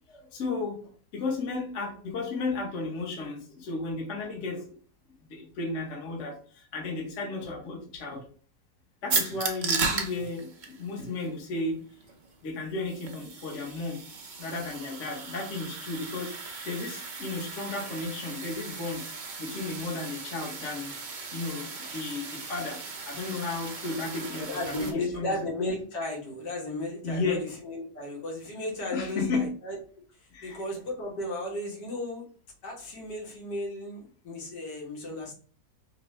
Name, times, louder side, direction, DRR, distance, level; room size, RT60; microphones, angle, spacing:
voice 1, 0.1-0.8 1.1-4.7 5.3-8.2 9.0-11.8 12.4-14.0 14.4-19.0 19.4-20.9 21.3-22.8 23.0-25.3 27.0-27.4 28.9-29.4 30.3-30.6, left 3 dB, 50° left, 0 dB, 1.3 m, -34 dB
sound 1, 9.1-24.9, right 4 dB, 55° right, 0.5 m, -36 dB
voice 2, 24.3-29.8 30.2-32.3 32.6-35.3, left 1 dB, 80° left, -2 dB, 1.9 m, -34 dB
5.3 x 2.2 x 3.1 m, 0.44 s
omnidirectional pair, 1.8 m